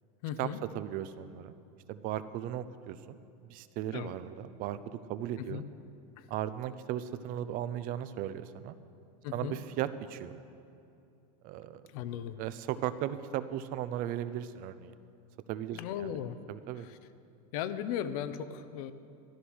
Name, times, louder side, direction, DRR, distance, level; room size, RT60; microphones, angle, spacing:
voice 1, 0.2-0.6 3.9-4.1 5.4-5.6 6.2-6.3 9.2-9.6 11.9-12.4 15.7-16.4 16.7-17.0 17.5-18.9, left 9 dB, 65° left, 12 dB, 0.9 m, -37 dB
voice 2, 0.7-1.6 1.9-3.2 3.5-4.8 5.1-5.6 6.3-8.8 9.3-10.4 11.4-11.8 12.4-14.9 15.5-16.1 16.5-16.9, right 11 dB, 45° right, 13 dB, 0.7 m, -36 dB
13.0 x 11.5 x 6.3 m, 2.6 s
supercardioid pair, 140°, 20 cm